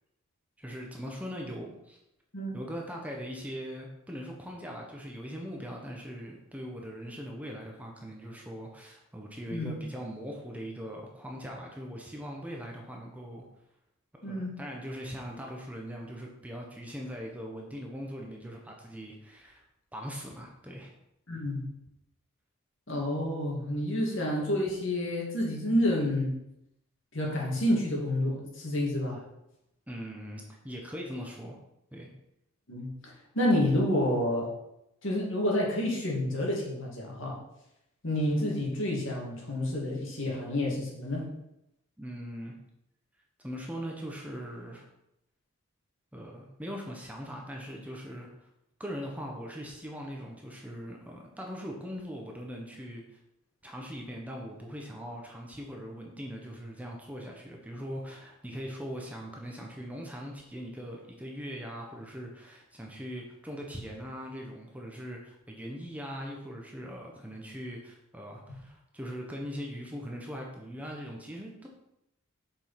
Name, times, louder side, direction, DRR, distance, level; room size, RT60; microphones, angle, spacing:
voice 1, 0.6-2.0 2.5-13.4 14.1-19.6 19.9-20.9 29.9-31.6 31.9-32.1 42.0-42.5 43.4-44.9 46.1-48.5 48.8-53.2 53.6-71.7, equal, 5° right, 0 dB, 1.1 m, -41 dB
voice 2, 14.2-14.5 21.3-21.7 22.9-26.4 27.1-29.2 32.7-32.9 33.3-34.5 35.0-37.4 38.0-41.3, left 1 dB, 60° left, -2 dB, 2.5 m, -29 dB
7.4 x 5.4 x 5.8 m, 0.85 s
head